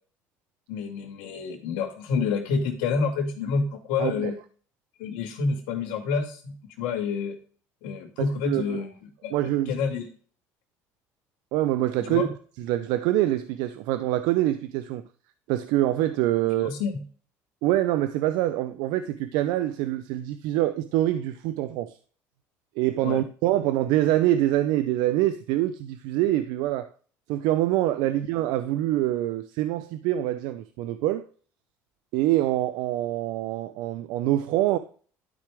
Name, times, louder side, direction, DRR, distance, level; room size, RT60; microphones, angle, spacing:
voice 1, 0.7-4.4 5.0-7.4 7.8-8.9 9.2-10.1 12.0-12.3 16.6-17.0 23.0-23.2, left 5 dB, 80° left, 2.3 m, -28 dB
voice 2, 4.0-4.3 8.2-8.8 9.3-9.7 11.5-12.3 12.6-15.0 15.5-16.7 17.6-22.0 22.8-26.9 27.3-31.3 32.1-34.8, right 14 dB, 75° right, 0.5 m, -25 dB
12.0 x 5.0 x 3.4 m
supercardioid pair, 95°, 7 cm